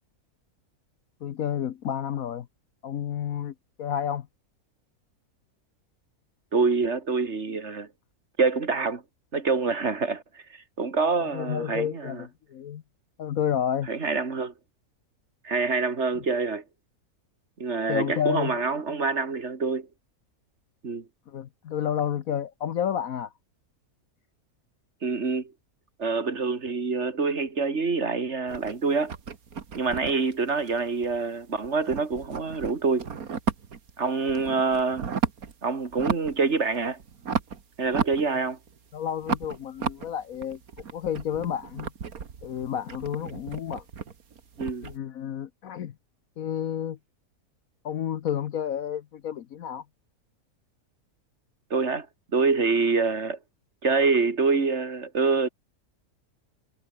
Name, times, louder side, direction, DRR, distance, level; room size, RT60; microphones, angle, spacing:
voice 1, 1.2-2.5 2.8-4.3 11.3-12.8 13.2-13.9 17.9-18.6 21.3-23.3 38.9-40.6 40.9-41.9 42.4-43.8 44.8-45.9 46.4-47.0 47.8-49.8, left 9 dB, 70° left, 1.3 m, -30 dB
voice 2, 6.5-7.9 8.4-9.0 9.3-12.2 13.9-14.5 15.4-16.6 17.6-19.9 20.8-21.1 25.0-25.5 26.0-29.1 29.8-33.1 34.0-35.0 35.6-37.0 37.8-38.6 44.6-44.9 51.7-52.1 52.3-53.4 53.8-55.5, right 4 dB, 50° right, 2.5 m, -26 dB
sound 1, 28.5-31.4 31.6-33.9 34.2-35.5 35.9-36.4 36.7-38.8 39.2-45.0, right 6 dB, 70° right, 2.2 m, -33 dB
omnidirectional pair, 1.6 m